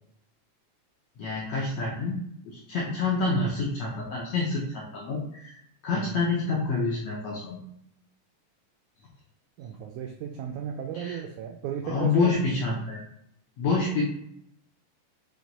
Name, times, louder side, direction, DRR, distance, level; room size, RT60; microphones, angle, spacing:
voice 1, 1.2-7.6 10.9-11.2 11.8-13.0 13.6-14.0, left 3 dB, 80° left, -3 dB, 1.5 m, -28 dB
voice 2, 9.6-12.4, right 8 dB, 85° right, 2 dB, 1.7 m, -35 dB
5.9 x 2.2 x 3.9 m, 0.75 s
omnidirectional pair, 3.9 m